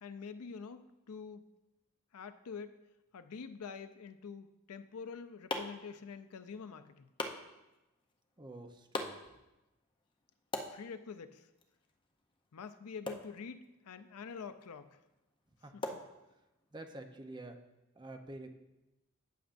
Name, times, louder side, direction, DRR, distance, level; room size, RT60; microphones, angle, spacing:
voice 1, 0.0-1.5 2.1-2.8 3.1-7.1 10.7-11.5 12.5-15.0 15.7-15.8, left 5 dB, 85° left, 11 dB, 0.5 m, -46 dB
sound 1, 4.8-16.8, left 2 dB, 20° left, 0.6 m, -46 dB
voice 2, 8.4-9.1 15.6-15.7 16.7-17.6 18.0-18.5, right 2 dB, 20° right, 5 dB, 0.7 m, -47 dB
14.0 x 7.0 x 2.6 m, 0.99 s
head